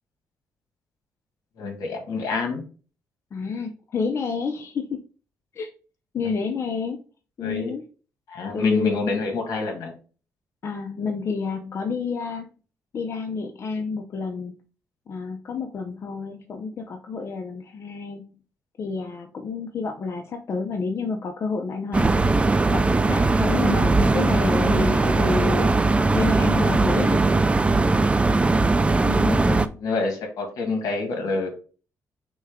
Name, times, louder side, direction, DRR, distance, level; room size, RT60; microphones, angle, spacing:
voice 1, 1.6-2.6 7.4-7.7 8.3-9.9 29.0-31.5, left 3 dB, 75° left, 3 dB, 1.5 m, -27 dB
voice 2, 3.3-5.0 5.5-5.7 6.1-7.0 7.4-7.8 8.5-9.1 10.6-12.5 12.9-14.5 15.1-18.3 18.8-25.7 26.1-27.3, left 4 dB, 50° left, 3 dB, 0.6 m, -29 dB
sound 1, 21.9-29.7, right 3 dB, 20° right, 0.3 m, -20 dB
6.1 x 2.3 x 3.5 m, 0.37 s
cardioid pair, 100°, 6 cm